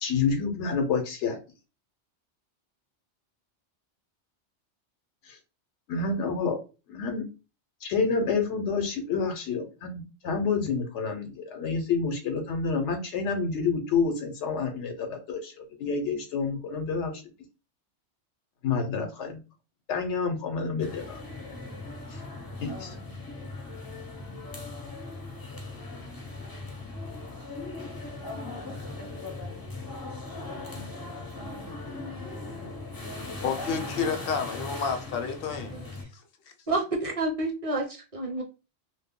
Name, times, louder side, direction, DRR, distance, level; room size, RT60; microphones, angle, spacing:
voice 1, 0.0-1.4 5.3-5.4 5.9-6.6 6.9-7.2 7.8-17.2 18.6-19.4 19.9-21.2 22.1-22.2 22.6-23.0, left 5 dB, 90° left, 1.0 m, -28 dB
sound 1, 20.8-36.0, left 2 dB, 30° left, 0.4 m, -39 dB
voice 2, 33.4-35.7 36.1-36.2, left 6 dB, 65° left, 0.7 m, -30 dB
voice 3, 36.7-38.4, right 2 dB, 35° right, 0.6 m, -29 dB
2.3 x 2.1 x 3.5 m
omnidirectional pair, 1.2 m